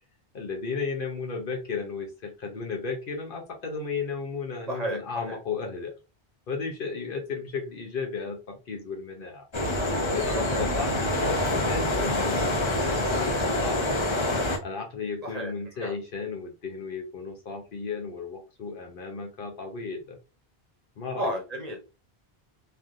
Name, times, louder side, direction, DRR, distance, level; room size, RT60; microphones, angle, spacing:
voice 1, 0.3-5.9 6.5-9.5 10.0-14.0 14.6-20.2 21.0-21.3, left 4 dB, 65° left, 2 dB, 0.8 m, -34 dB
voice 2, 4.7-5.0 5.3-5.4 10.4-10.6 15.2-15.9 21.2-21.8, right 1 dB, 45° right, 0 dB, 0.8 m, -32 dB
sound 1, 9.5-14.6, left 1 dB, 35° left, 0.6 m, -26 dB
3.2 x 2.4 x 2.4 m, 0.30 s
omnidirectional pair, 1.0 m